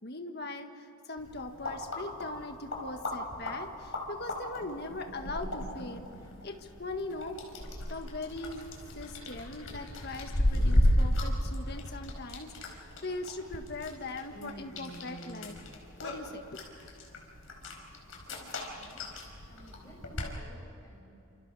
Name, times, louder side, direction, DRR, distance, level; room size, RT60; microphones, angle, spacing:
voice 1, 0.0-6.1 6.4-7.4 7.9-8.7 8.9-15.6 16.0-16.9, left 2 dB, 45° left, 5 dB, 1.6 m, -40 dB
sound 1, 1.2-20.3, left 1 dB, 65° left, 4.8 m, -34 dB
sound 2, 10.5-10.9 11.4-12.9 13.5-13.7 14.0-16.2, left 1 dB, 80° left, 4.1 m, -46 dB
voice 2, 18.2-19.0 19.4-21.0, left 1 dB, 15° left, -3 dB, 7.8 m, -55 dB
28.5 x 28.0 x 4.9 m, 2.9 s
head